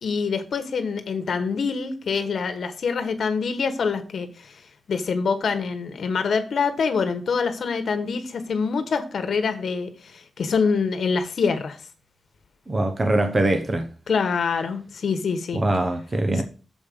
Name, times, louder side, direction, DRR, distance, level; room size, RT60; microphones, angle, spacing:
voice 1, 0.0-4.6 4.9-11.8 14.1-15.6, left 5 dB, 75° left, 1.1 m, -25 dB
voice 2, 12.7-13.9 15.5-16.4, right 1 dB, 30° right, 0.9 m, -22 dB
7.0 x 5.0 x 6.8 m
wide cardioid pair, 100°, 0 cm